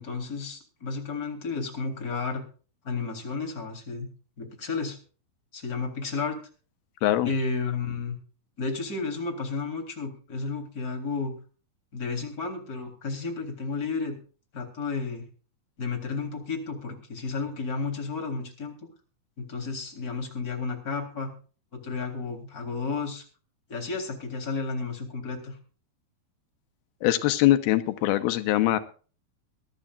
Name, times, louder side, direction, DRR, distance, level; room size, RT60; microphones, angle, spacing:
voice 1, 0.0-2.4 2.8-4.1 4.4-5.0 5.5-6.4 7.2-8.2 8.6-11.4 11.9-14.2 14.5-15.2 15.8-18.7 19.4-21.3 21.7-23.2 23.7-25.6, left 4 dB, 25° left, 3 dB, 3.8 m, -32 dB
voice 2, 27.0-28.8, left 14 dB, 90° left, 10 dB, 2.9 m, -22 dB
22.5 x 12.5 x 2.5 m, 0.38 s
omnidirectional pair, 4.2 m